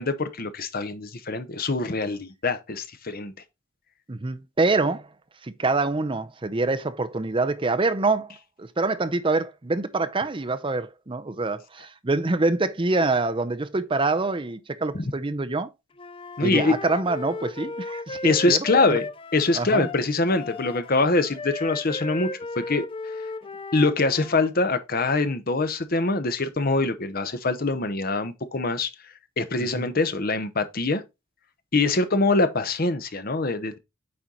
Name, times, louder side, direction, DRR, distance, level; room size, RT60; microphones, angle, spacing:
voice 1, 0.0-3.3 14.9-15.1 16.4-16.7 18.2-19.1 19.3-22.3 22.6-22.8 23.7-28.9 29.4-31.0 31.7-33.8, left 3 dB, 45° left, 0.9 m, -24 dB
voice 2, 4.1-5.1 5.4-15.7 16.4-18.6 18.9-19.0 19.5-19.9 29.6-29.9, right 3 dB, 25° right, 0.6 m, -25 dB
Wind instrument woodwind instrument, 16.0-24.5, left 3 dB, 25° left, 0.4 m, -36 dB
8.6 x 4.5 x 3.9 m
head